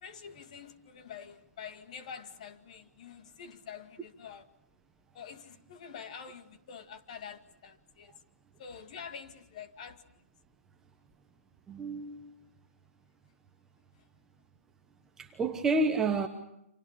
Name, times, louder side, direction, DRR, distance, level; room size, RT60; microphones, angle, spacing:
voice 1, 0.0-4.5 5.1-8.1 8.6-10.1, left 7 dB, 30° left, 2.1 m, -46 dB
voice 2, 11.7-12.3 15.2-16.3, right 3 dB, 5° right, 1.0 m, -29 dB
30.0 x 28.0 x 6.7 m
hypercardioid pair, 170°, 8 cm